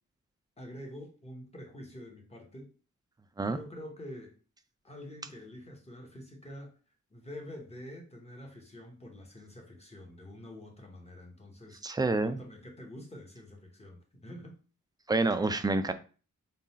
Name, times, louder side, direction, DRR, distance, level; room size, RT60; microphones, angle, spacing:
voice 1, 0.6-2.7 3.4-4.3 4.8-6.7 7.1-14.5, left 1 dB, 20° left, 1 dB, 1.0 m, -47 dB
voice 2, 11.8-12.4 15.1-15.9, right 2 dB, 15° right, 9 dB, 0.3 m, -28 dB
3.8 x 2.3 x 4.1 m, 0.36 s
wide cardioid pair, 110°, 32 cm